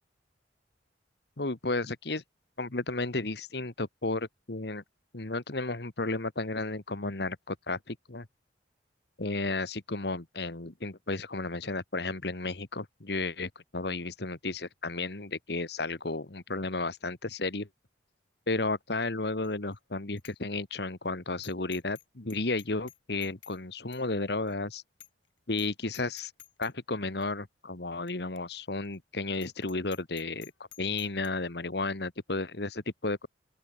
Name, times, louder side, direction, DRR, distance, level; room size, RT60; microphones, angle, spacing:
voice 1, 1.4-2.2 2.6-4.8 5.1-8.3 9.2-17.7 18.5-24.8 25.5-26.3 26.6-30.5 30.8-33.3, left 3 dB, 60° left, 1.5 m, -33 dB
Bicycle bell, 19.4-19.8 20.2-20.3 20.7-20.8 21.4-22.0 22.3-23.6 23.9-24.0 24.5-24.6 25.0-25.3 25.5-25.7 25.9-26.7 27.2-27.3 28.1-28.2 28.4-28.5 28.8-29.0 29.3-31.3, left 14 dB, 90° left, 4.1 m, -52 dB
open air
head